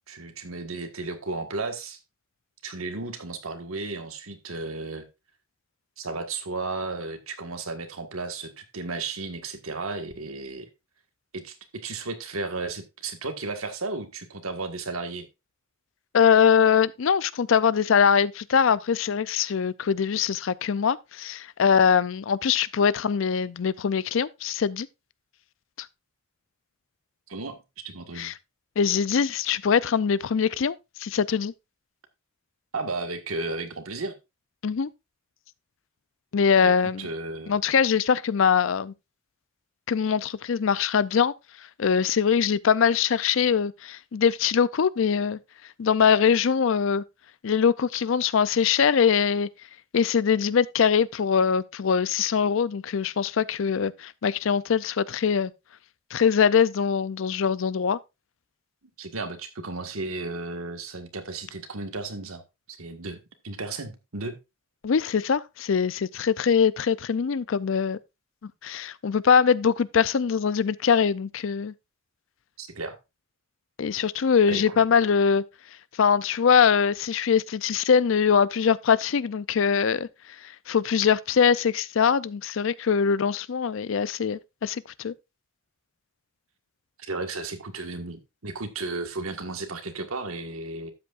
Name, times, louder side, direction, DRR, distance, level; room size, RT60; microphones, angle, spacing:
voice 1, 0.1-2.0 2.6-5.1 6.0-10.7 11.3-15.3 27.3-28.3 32.7-34.1 36.6-37.6 59.0-62.4 62.7-63.2 63.4-64.4 72.6-73.0 74.5-74.8 87.0-90.9, right 3 dB, 85° right, 1.6 m, -34 dB
voice 2, 16.1-24.9 28.2-28.3 28.8-31.5 34.6-34.9 36.3-37.1 37.5-38.9 39.9-41.3 41.8-45.4 45.8-47.0 47.4-49.5 49.9-55.5 56.1-58.0 64.8-68.0 68.6-71.7 73.8-75.4 76.0-80.1 80.4-85.1, left 6 dB, 65° left, 0.4 m, -22 dB
12.5 x 8.2 x 2.5 m
head